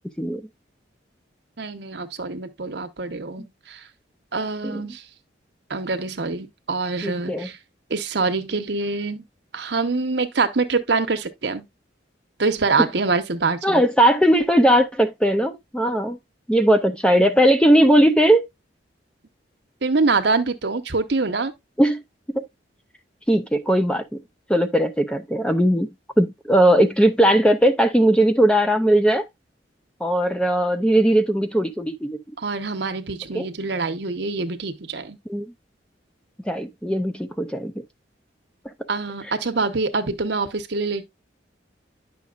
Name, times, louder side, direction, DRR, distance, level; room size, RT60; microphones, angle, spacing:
voice 1, 1.6-3.9 4.3-5.1 5.7-7.6 7.9-9.3 9.5-11.7 12.4-13.8 19.8-21.5 32.4-35.2 38.9-41.1, right 3 dB, 60° right, 0.9 m, -25 dB
voice 2, 7.0-7.5 13.6-16.2 16.5-18.4 21.8-22.0 22.4-22.5 23.3-24.2 24.5-25.9 26.2-29.2 30.0-32.2 33.3-33.5 35.3-35.5 36.5-37.7, right 1 dB, 5° left, 0.4 m, -18 dB
9.4 x 6.0 x 2.4 m
head